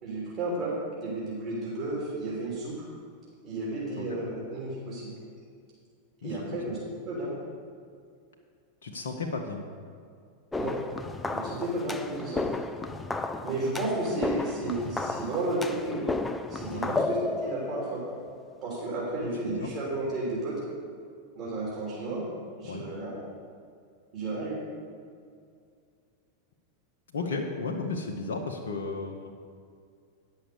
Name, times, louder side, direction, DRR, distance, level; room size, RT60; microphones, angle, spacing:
voice 1, 0.0-2.7 3.4-5.1 6.2-6.8 7.0-7.3 10.6-10.8 11.3-12.5 13.4-16.0 16.5-18.0 18.6-20.6 21.3-22.2 22.6-23.1 24.1-24.6, right 2 dB, 40° right, -7 dB, 3.1 m, -32 dB
voice 2, 6.2-6.6 8.8-9.6 16.7-17.0 19.2-19.7 22.6-22.9 27.1-29.3, left 3 dB, 65° left, 2 dB, 0.9 m, -34 dB
sound 1, 10.5-18.6, left 2 dB, 10° left, 0.5 m, -33 dB
9.9 x 6.4 x 6.9 m, 2.2 s
figure-of-eight pair, 90°, 0 cm